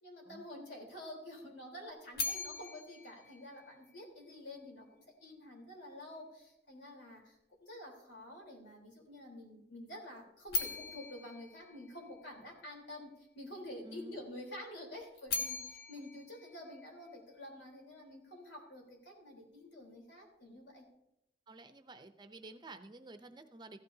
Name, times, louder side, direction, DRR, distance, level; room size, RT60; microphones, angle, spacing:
voice 1, 0.0-20.8, left 1 dB, 90° left, 0 dB, 3.8 m, -49 dB
sound 1, 2.1-4.3 10.5-12.6 15.0-17.4, left 4 dB, 60° left, 1.3 m, -41 dB
voice 2, 13.8-14.2 16.0-16.1 21.5-23.8, right 2 dB, 25° right, 8 dB, 0.6 m, -51 dB
15.5 x 12.0 x 2.8 m, 0.84 s
head